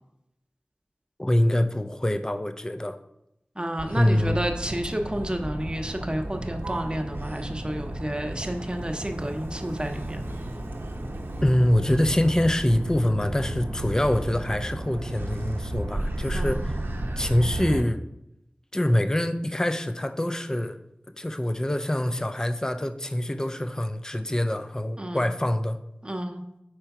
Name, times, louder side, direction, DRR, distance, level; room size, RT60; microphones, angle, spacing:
voice 1, 1.2-3.0 3.9-4.4 11.4-16.8 17.2-18.0 18.7-20.8 21.2-25.8, left 1 dB, 15° left, 9 dB, 0.4 m, -25 dB
voice 2, 3.6-10.3 16.3-16.7 25.0-25.3 26.0-26.4, right 1 dB, 25° right, 5 dB, 0.8 m, -31 dB
Motor vehicle (road), 3.8-17.8, right 1 dB, 80° right, 0.7 m, -33 dB
4.5 x 4.4 x 5.9 m, 0.85 s
wide cardioid pair, 55°, 4 cm